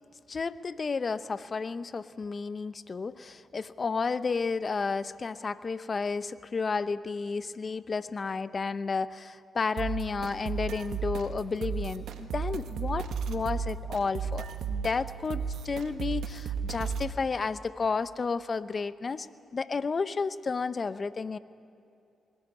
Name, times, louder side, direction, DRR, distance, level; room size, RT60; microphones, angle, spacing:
voice 1, 0.3-19.3 19.5-21.4, left 4 dB, 45° left, 14 dB, 0.8 m, -32 dB
sound 1, 9.8-17.2, right 6 dB, 75° right, 1.4 m, -34 dB
21.5 x 17.5 x 9.8 m, 2.7 s
supercardioid pair, 45°, 0 cm